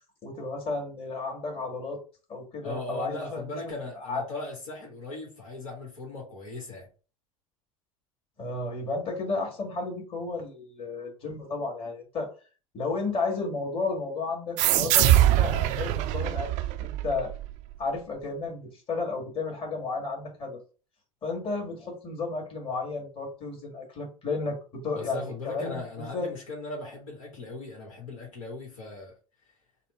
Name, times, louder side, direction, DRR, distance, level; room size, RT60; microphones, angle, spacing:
voice 1, 0.2-2.0 2.3-3.5 4.0-4.2 8.4-12.3 12.7-16.5 16.8-17.3 17.8-20.6 21.2-26.3, left 3 dB, 30° left, 1.7 m, -33 dB
voice 2, 2.6-6.9 24.9-29.2, left 2 dB, 70° left, 1.2 m, -38 dB
sound 1, 14.6-17.8, right 13 dB, 45° right, 0.4 m, -23 dB
4.2 x 2.0 x 4.1 m
figure-of-eight pair, 75°, 18 cm